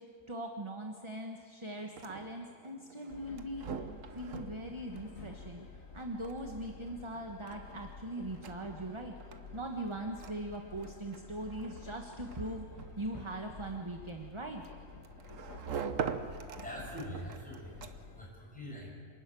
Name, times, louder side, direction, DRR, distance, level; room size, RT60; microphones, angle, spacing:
voice 1, 0.3-3.9 4.1-5.7 5.9-9.1 9.5-12.7 13.0-14.6, right 1 dB, 25° right, 3 dB, 1.3 m, -41 dB
sound 1, 1.7-18.3, right 6 dB, 75° right, 1.4 m, -45 dB
Train, 3.1-18.3, left 5 dB, 90° left, 1.9 m, -51 dB
voice 2, 15.9-18.9, equal, 5° left, -4 dB, 7.1 m, -45 dB
27.5 x 13.0 x 9.2 m, 2.1 s
omnidirectional pair, 1.4 m